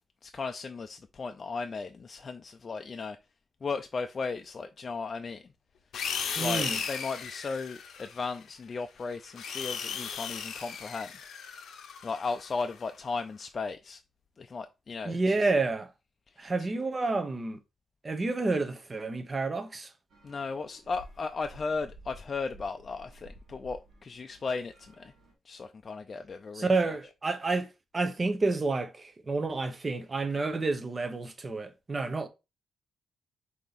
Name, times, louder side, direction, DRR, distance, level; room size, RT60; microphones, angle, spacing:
voice 1, 0.2-3.2 3.6-5.4 6.4-11.1 12.0-14.0 14.4-15.5 16.4-16.7 20.2-25.1 25.5-26.8 27.0-27.1, left 4 dB, 40° left, 0.4 m, -36 dB
sound 1, 5.9-8.4 9.1-12.8, left 7 dB, 80° left, 0.7 m, -36 dB
voice 2, 6.4-6.8 15.0-15.9 16.4-17.6 18.0-19.9 26.5-32.3, right 3 dB, 30° right, 0.8 m, -29 dB
sound 2, 20.1-25.3, equal, 60° right, 1.5 m, -53 dB
4.6 x 2.8 x 4.0 m
cardioid pair, 95°, 0 cm